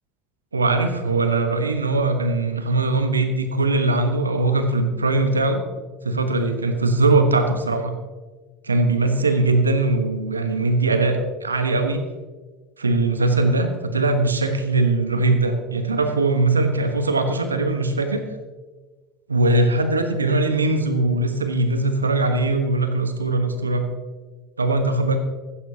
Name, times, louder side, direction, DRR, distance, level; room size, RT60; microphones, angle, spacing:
voice 1, 0.5-5.6 6.0-7.9 8.6-12.0 12.8-18.2 19.3-23.9 24.6-25.2, right 2 dB, 90° right, 7 dB, 1.2 m, -21 dB
15.0 x 13.0 x 2.9 m, 1.3 s
hypercardioid pair, 75°, 0 cm